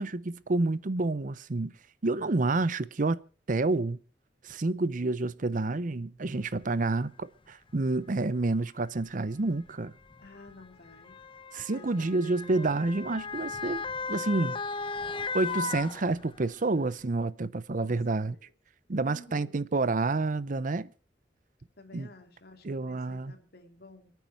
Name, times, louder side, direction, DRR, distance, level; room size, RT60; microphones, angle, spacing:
voice 1, 0.0-1.7 2.0-3.2 3.5-4.0 4.4-9.9 11.5-13.8 14.1-14.6 15.3-18.4 18.9-20.9 21.9-22.1 22.6-23.3, right 3 dB, 45° right, 0.7 m, -29 dB
Motor vehicle (road) / Siren, 6.6-6.7 7.7-7.9 9.0-16.6 17.0-17.1, left 4 dB, 30° left, 0.7 m, -37 dB
voice 2, 10.2-11.2 11.7-12.9 17.8-18.0 18.3-18.5 19.0-19.7 21.8-24.1, left 2 dB, 60° left, 2.8 m, -51 dB
27.0 x 9.4 x 4.6 m
head